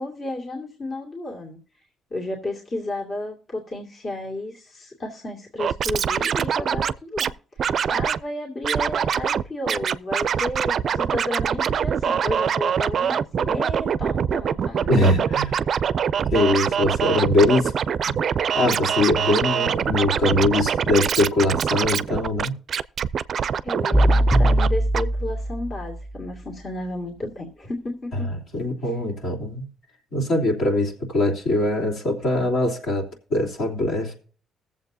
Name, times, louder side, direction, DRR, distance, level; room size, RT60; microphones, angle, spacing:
voice 1, 0.0-1.6 2.1-7.3 7.6-15.3 15.7-16.1 23.6-28.3 28.8-28.9, left 1 dB, 45° left, -2 dB, 2.3 m, -32 dB
Scratching (performance technique), 5.6-7.3 7.6-8.2 8.6-9.4 9.7-24.7 24.9-25.0, right 7 dB, 55° right, 0.4 m, -24 dB
voice 2, 14.9-15.5 16.3-17.7 18.1-18.2 18.5-22.5 28.3-29.7 30.1-34.1, left 2 dB, 70° left, -2 dB, 3.2 m, -22 dB
sound 1, 23.9-26.0, equal, 15° left, 1.8 m, -20 dB
20.0 x 7.4 x 2.7 m, 0.41 s
cardioid pair, 90°, 0 cm